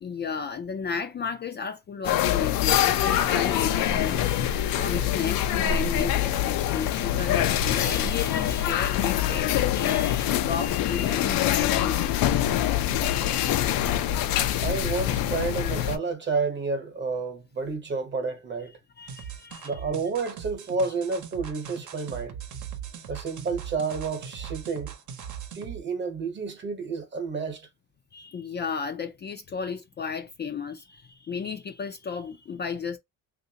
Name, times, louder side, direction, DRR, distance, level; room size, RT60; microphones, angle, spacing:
voice 1, 0.0-12.0 19.0-19.8 28.1-33.0, left 6 dB, 30° left, 0.4 m, -34 dB
sound 1, 2.0-16.0, left 11 dB, 80° left, 0.6 m, -24 dB
voice 2, 14.6-18.7 19.6-22.4 23.1-24.9 25.5-27.7, right 4 dB, 30° right, 1.1 m, -30 dB
sound 2, 19.1-25.8, right 9 dB, 55° right, 0.9 m, -40 dB
3.2 x 2.6 x 2.8 m
cardioid pair, 145°, 34 cm